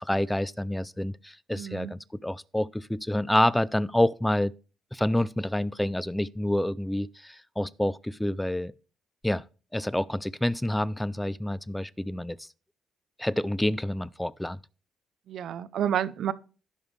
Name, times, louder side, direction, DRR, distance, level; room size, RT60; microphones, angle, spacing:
voice 1, 0.0-4.5 4.9-8.7 9.2-9.4 9.7-12.5 13.2-14.6, left 1 dB, 5° left, 0.4 m, -28 dB
voice 2, 1.5-1.9 15.3-16.3, right 9 dB, 70° right, 0.5 m, -30 dB
16.0 x 5.5 x 3.2 m
cardioid pair, 90°, 0 cm